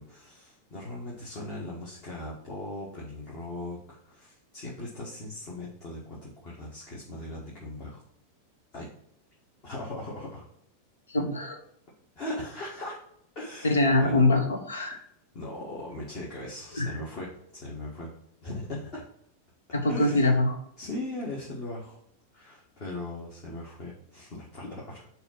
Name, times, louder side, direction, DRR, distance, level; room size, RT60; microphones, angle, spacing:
voice 1, 0.0-8.0 8.7-8.9 9.6-10.5 12.2-13.0 13.4-14.2 14.9-15.1 15.3-18.1 18.4-19.0 19.9-20.3 20.8-22.0 22.3-25.1, left 1 dB, 40° left, -5 dB, 1.7 m, -39 dB
voice 2, 11.1-11.6 13.6-15.0 16.7-16.9 19.7-20.6, left 2 dB, 70° left, 5 dB, 1.2 m, -23 dB
6.8 x 3.0 x 5.8 m, 0.71 s
figure-of-eight pair, 90°, 0 cm